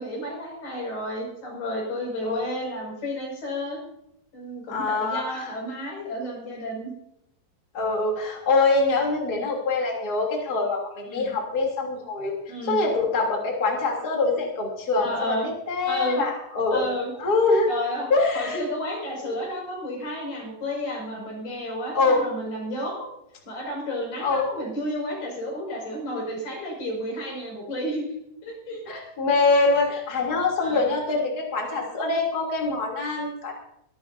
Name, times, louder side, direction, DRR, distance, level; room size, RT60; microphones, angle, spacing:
voice 1, 0.0-3.8 4.3-6.9 11.1-11.4 12.5-12.8 15.0-15.5 15.9-16.2 16.7-17.1 17.7-18.1 18.3-23.1 23.4-28.0 28.4-28.8 30.6-30.9, equal, 90° left, -1 dB, 7.7 m, -31 dB
voice 2, 4.7-5.5 7.7-12.3 12.7-15.3 15.7-16.9 17.2-17.7 18.1-18.6 21.9-22.2 24.2-24.5 28.9-33.5, left 3 dB, 30° left, -1 dB, 3.4 m, -24 dB
24.0 x 13.0 x 2.7 m, 0.78 s
omnidirectional pair, 3.9 m